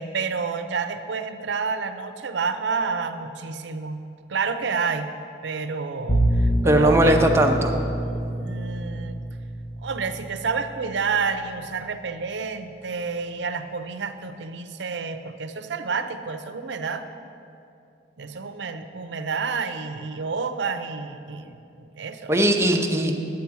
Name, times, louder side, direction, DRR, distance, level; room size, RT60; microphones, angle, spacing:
voice 1, 0.0-4.0 4.3-5.1 5.4-7.2 8.0-9.1 9.8-17.1 18.2-22.4, right 5 dB, 75° right, 9 dB, 0.6 m, -29 dB
Bowed string instrument, 6.1-11.2, right 1 dB, 25° left, 0.6 m, -26 dB
voice 2, 6.6-7.8 22.3-23.1, right 1 dB, 15° right, 3 dB, 0.6 m, -19 dB
10.5 x 8.4 x 4.7 m, 2.6 s
head